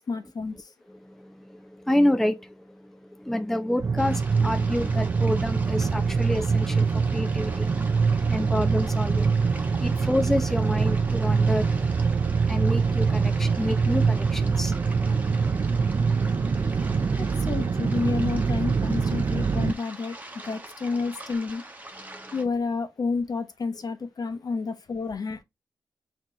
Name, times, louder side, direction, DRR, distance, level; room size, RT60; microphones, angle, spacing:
voice 1, 0.1-0.7 17.2-20.2 20.5-21.6 22.3-25.4, left 4 dB, 55° left, 0.9 m, -30 dB
voice 2, 0.9-17.4 20.5-20.6 22.0-22.3, left 1 dB, 5° left, 0.5 m, -30 dB
sound 1, 3.8-19.7, right 5 dB, 45° right, 0.5 m, -24 dB
sound 2, 4.0-22.4, right 1 dB, 20° right, 1.2 m, -44 dB
5.7 x 2.9 x 3.1 m
cardioid pair, 55°, 8 cm